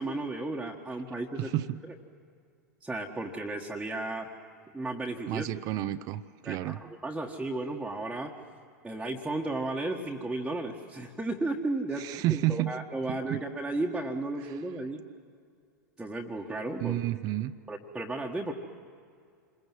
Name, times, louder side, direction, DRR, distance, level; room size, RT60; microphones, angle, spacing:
voice 1, 0.0-1.5 2.8-4.3 4.7-5.5 6.4-8.4 8.8-15.0 16.0-17.0 17.7-18.5, right 2 dB, 5° right, -2 dB, 1.5 m, -34 dB
voice 2, 1.4-1.8 5.3-6.8 12.0-12.8 13.1-13.4 14.5-14.6 16.8-17.6, right 15 dB, 40° right, 13 dB, 0.7 m, -31 dB
27.5 x 22.0 x 7.7 m, 2.3 s
figure-of-eight pair, 95°, 10 cm